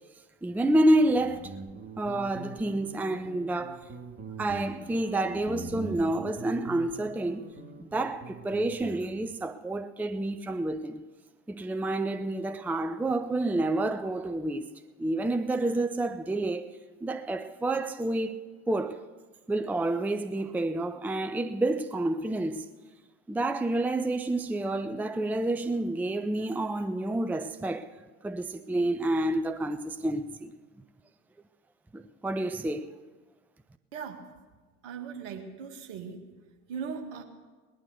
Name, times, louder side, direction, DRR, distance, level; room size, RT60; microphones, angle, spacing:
voice 1, 0.4-1.5 2.0-3.8 4.4-7.5 7.8-11.0 11.5-14.7 15.0-16.7 17.0-19.0 19.5-22.7 23.3-27.9 28.2-30.5 31.9-32.9, right 1 dB, 5° right, 0.6 m, -29 dB
Guitar, 0.8-9.3, right 3 dB, 30° right, 2.1 m, -43 dB
voice 2, 33.9-34.2 34.8-36.2 36.7-37.2, right 6 dB, 60° right, 2.1 m, -38 dB
19.0 x 11.5 x 6.6 m
figure-of-eight pair, 65°, 39 cm